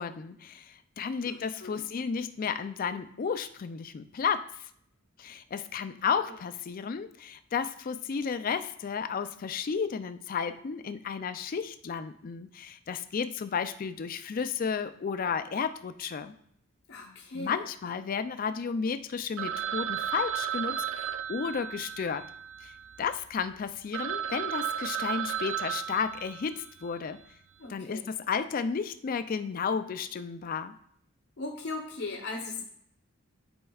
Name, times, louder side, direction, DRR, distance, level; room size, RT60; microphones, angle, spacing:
voice 1, 0.0-4.7 5.2-16.3 17.3-22.3 22.6-22.7 23.0-27.2 27.7-30.7, left 6 dB, 40° left, 11 dB, 0.3 m, -33 dB
voice 2, 1.3-1.8 5.9-6.4 16.9-17.7 27.6-28.1 31.4-32.6, left 3 dB, 70° left, -1 dB, 0.9 m, -39 dB
Telephone, 19.4-23.2 23.6-23.7 23.9-26.8, right 9 dB, 80° right, 0.4 m, -34 dB
10.5 x 4.4 x 2.3 m, 0.68 s
head